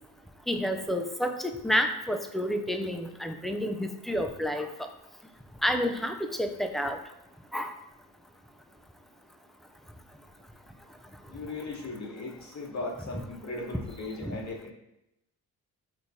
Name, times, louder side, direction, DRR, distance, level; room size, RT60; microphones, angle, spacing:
voice 1, 0.5-4.7 5.6-7.0 7.5-7.7 14.2-14.4, equal, ahead, 5 dB, 0.5 m, -29 dB
voice 2, 11.3-14.7, left 2 dB, 40° left, -1 dB, 1.1 m, -37 dB
4.4 x 2.7 x 4.1 m, 0.86 s
hypercardioid pair, 45°, 43 cm